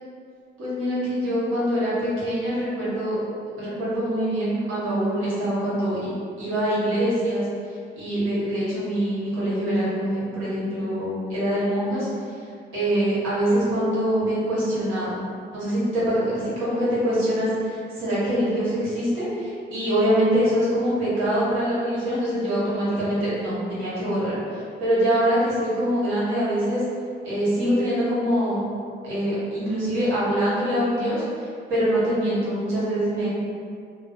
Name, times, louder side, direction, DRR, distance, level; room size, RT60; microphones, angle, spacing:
voice 1, 0.6-3.2 3.6-6.1 6.4-7.5 8.0-12.3 12.7-15.2 15.5-26.8 27.2-28.6 29.0-33.3, equal, 90° right, -10 dB, 1.1 m, -24 dB
2.3 x 2.1 x 2.6 m, 2.3 s
cardioid pair, 90°, 20 cm